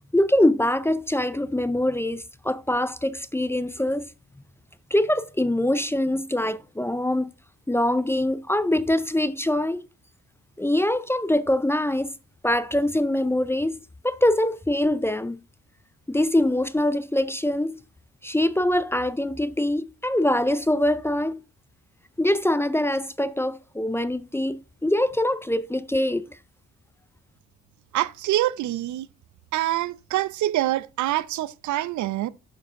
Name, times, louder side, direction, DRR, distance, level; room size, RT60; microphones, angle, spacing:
voice 1, 0.1-4.1 4.9-7.3 7.7-9.9 10.6-12.2 12.4-15.4 16.1-17.8 18.2-21.4 22.2-26.4, left 1 dB, 10° left, 0.4 m, -24 dB
voice 2, 27.9-29.1 29.5-32.3, right 14 dB, 70° right, 0.5 m, -25 dB
7.2 x 6.5 x 3.6 m
cardioid pair, 90°, 30 cm